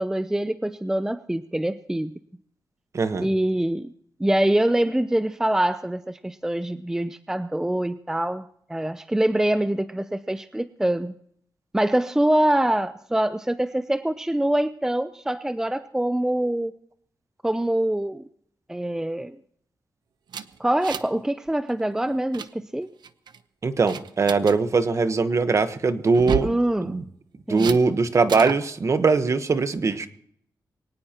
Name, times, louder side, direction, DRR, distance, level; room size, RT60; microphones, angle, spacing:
voice 1, 0.0-2.1 3.2-3.9 4.2-11.1 11.7-16.7 17.4-18.2 18.7-19.4 20.6-22.9 26.4-27.0 27.5-27.8, right 1 dB, 5° right, 12 dB, 0.5 m, -24 dB
voice 2, 2.9-3.3 23.6-26.5 26.8-27.0 27.5-30.1, right 4 dB, 40° right, 10 dB, 1.1 m, -21 dB
sound 1, 20.3-21.2 21.5-21.7 22.1-22.5 23.0-23.4 23.9-24.6 26.1-26.6 27.6-27.8 28.3-28.6, right 7 dB, 80° right, 0.8 m, -31 dB
22.5 x 18.5 x 2.9 m, 0.68 s
wide cardioid pair, 130°, 7 cm